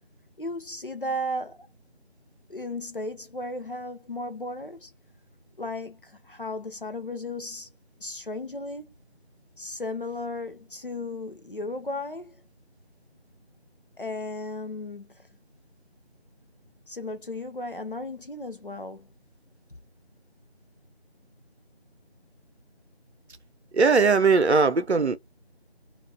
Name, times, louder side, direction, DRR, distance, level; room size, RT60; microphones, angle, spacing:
voice 1, 0.4-1.7 2.5-4.9 5.6-7.7 8.0-8.9 9.6-12.4 14.0-15.3 16.9-19.1, left 1 dB, 55° left, 0.6 m, -35 dB
voice 2, 23.7-25.2, right 4 dB, 85° right, 0.6 m, -19 dB
2.4 x 2.2 x 3.4 m
figure-of-eight pair, 175°, 32 cm